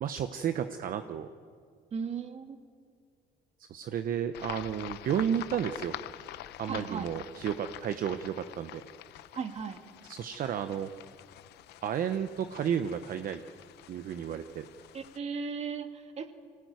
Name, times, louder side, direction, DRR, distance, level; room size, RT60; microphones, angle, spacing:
voice 1, 0.0-1.3 3.7-5.9 6.6-8.8 10.1-10.9 11.8-13.4 13.9-14.7, right 9 dB, 55° right, 9 dB, 1.0 m, -32 dB
voice 2, 1.9-2.6 6.7-7.1 9.3-9.8 14.9-16.3, right 5 dB, 40° right, 7 dB, 2.0 m, -36 dB
sound 1, 4.3-15.2, left 13 dB, 80° left, 0.8 m, -46 dB
24.5 x 18.0 x 9.5 m, 2.1 s
cardioid pair, 110°, 17 cm